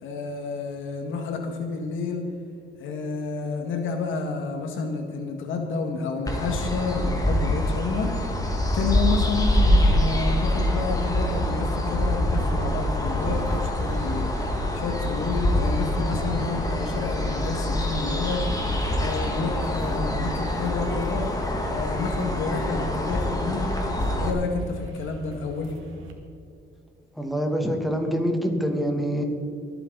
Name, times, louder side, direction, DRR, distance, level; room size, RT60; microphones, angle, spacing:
voice 1, 0.0-2.2 2.8-8.3 8.7-14.3 14.7-21.3 21.7-23.7 24.2-25.7, left 4 dB, 80° left, 4 dB, 1.9 m, -30 dB
sound 1, 6.3-24.3, left 1 dB, 20° left, 2.1 m, -25 dB
sound 2, 13.1-26.1, equal, 80° right, 2.1 m, -43 dB
voice 2, 27.2-29.2, equal, ahead, 2 dB, 2.4 m, -25 dB
23.5 x 9.2 x 4.0 m, 2.5 s
cardioid pair, 90°, 20 cm